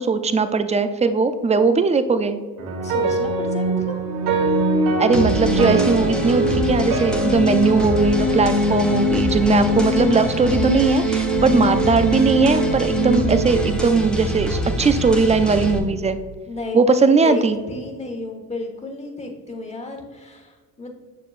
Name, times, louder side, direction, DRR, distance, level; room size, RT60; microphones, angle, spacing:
voice 1, 0.0-2.4 5.0-16.2 16.7-17.6, right 4 dB, 20° right, 10 dB, 0.4 m, -19 dB
sound 1, 2.6-14.9, right 1 dB, 60° right, 1.6 m, -22 dB
voice 2, 2.8-4.0 16.5-20.9, left 2 dB, 15° left, 2 dB, 1.3 m, -32 dB
sound 2, 5.1-15.8, equal, ahead, 1.0 m, -27 dB
7.4 x 6.5 x 2.5 m, 1.5 s
supercardioid pair, 90°, 37 cm